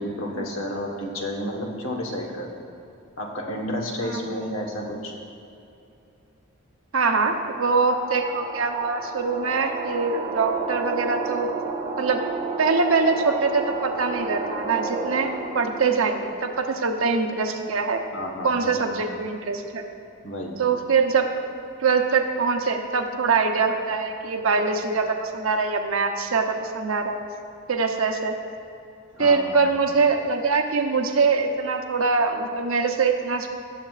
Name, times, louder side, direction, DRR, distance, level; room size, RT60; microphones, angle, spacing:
voice 1, 0.0-2.7 3.2-5.1 18.1-18.8 20.2-20.6 29.1-29.5, left 1 dB, 75° left, 0 dB, 1.4 m, -31 dB
voice 2, 4.0-4.5 6.9-11.5 12.0-12.2 12.6-18.0 18.4-19.8 20.6-21.3 21.8-27.2 27.7-28.3 29.2-33.5, right 4 dB, 80° right, 4 dB, 0.8 m, -23 dB
sound 1, 7.5-15.9, right 4 dB, 30° right, 1.5 m, -31 dB
18.0 x 7.3 x 2.5 m, 2.7 s
head